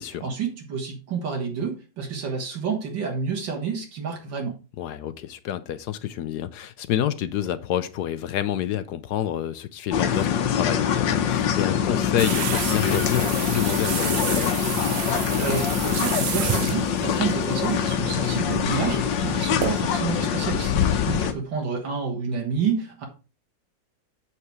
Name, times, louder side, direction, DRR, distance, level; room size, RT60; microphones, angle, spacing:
voice 1, 0.1-4.6 15.4-23.0, right 5 dB, 90° right, 2.3 m, -29 dB
voice 2, 4.8-14.6, left 11 dB, 70° left, 1.1 m, -28 dB
sound 1, 9.9-21.3, left 8 dB, 85° left, 1.6 m, -24 dB
sound 2, 12.2-19.8, right 9 dB, 70° right, 0.6 m, -31 dB
8.0 x 5.8 x 4.7 m
omnidirectional pair, 2.0 m